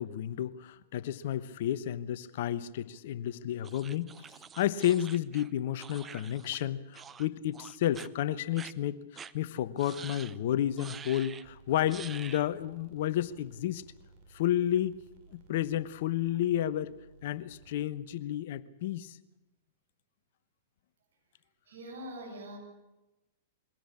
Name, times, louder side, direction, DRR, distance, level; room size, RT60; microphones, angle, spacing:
voice 1, 0.0-4.1 4.5-9.0 9.3-13.8 14.3-15.0 15.3-16.9 17.2-19.2, left 12 dB, 60° left, 16 dB, 1.0 m, -31 dB
Tiny vicious creature, 3.6-6.7 6.9-7.3 7.5-8.1 8.6-8.7 9.2-9.3 9.8-10.4 10.8-11.5 11.9-12.5, right 7 dB, 20° right, 0.8 m, -47 dB
sound 1, 11.4-18.3, right 3 dB, 50° right, 4.8 m, -58 dB
voice 2, 21.7-22.6, equal, 70° right, 4 dB, 7.7 m, -43 dB
22.0 x 17.0 x 8.6 m, 1.0 s
hypercardioid pair, 110°, 0 cm